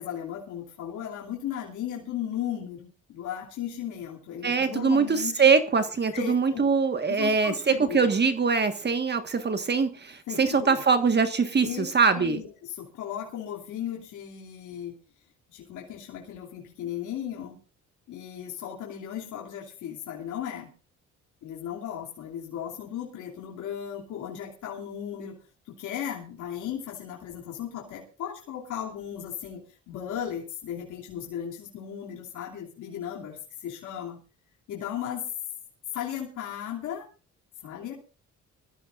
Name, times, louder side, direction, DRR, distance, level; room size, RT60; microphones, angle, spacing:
voice 1, 0.0-5.4 6.1-6.7 7.1-8.1 10.3-10.8 11.6-11.9 12.1-15.0 15.5-17.6 18.1-20.7 21.4-25.4 25.6-34.2 34.7-35.3 35.9-37.1 37.6-37.9, left 9 dB, 80° left, -2 dB, 2.9 m, -36 dB
voice 2, 4.4-11.7 11.9-12.4, right 5 dB, 35° right, 8 dB, 1.6 m, -23 dB
23.5 x 14.0 x 2.5 m, 0.35 s
cardioid pair, 90°, 30 cm